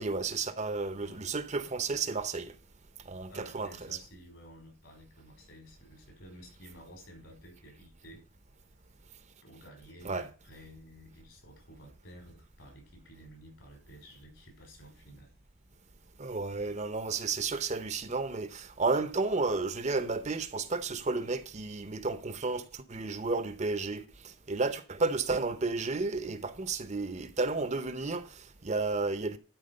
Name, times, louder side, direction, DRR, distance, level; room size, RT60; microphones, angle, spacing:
voice 1, 0.0-2.5 3.1-3.7 10.0-10.3 16.2-29.4, right 3 dB, 35° right, 0.7 m, -32 dB
voice 2, 1.0-1.3 3.3-8.2 9.4-15.3, equal, 65° left, 5.1 m, -52 dB
12.5 x 4.7 x 6.5 m
head